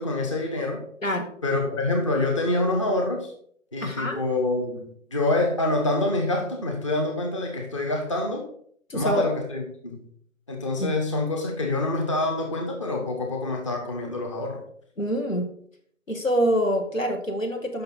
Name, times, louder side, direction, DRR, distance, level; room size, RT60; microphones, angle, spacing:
voice 1, 0.0-0.8 1.4-3.3 3.7-8.4 8.9-10.1 10.5-14.6, left 2 dB, 25° left, 1 dB, 0.8 m, -26 dB
voice 2, 3.8-4.2 8.9-9.3 10.8-10.9 15.0-15.5 16.1-17.8, equal, 80° left, 4 dB, 1.6 m, -25 dB
6.7 x 5.7 x 4.1 m, 0.63 s
figure-of-eight pair, 150°, 39 cm